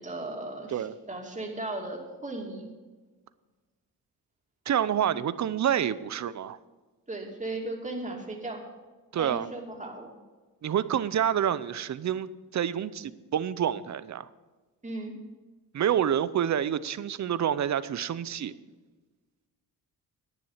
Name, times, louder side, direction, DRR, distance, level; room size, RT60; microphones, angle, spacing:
voice 1, 0.0-2.7 7.1-8.6 9.2-10.1 14.8-15.1, right 2 dB, 20° right, 0 dB, 2.8 m, -36 dB
voice 2, 4.7-6.6 9.1-9.5 10.6-14.3 15.7-18.5, right 9 dB, 50° right, 16 dB, 0.6 m, -28 dB
10.5 x 9.8 x 5.7 m, 1.3 s
cardioid pair, 95°, 38 cm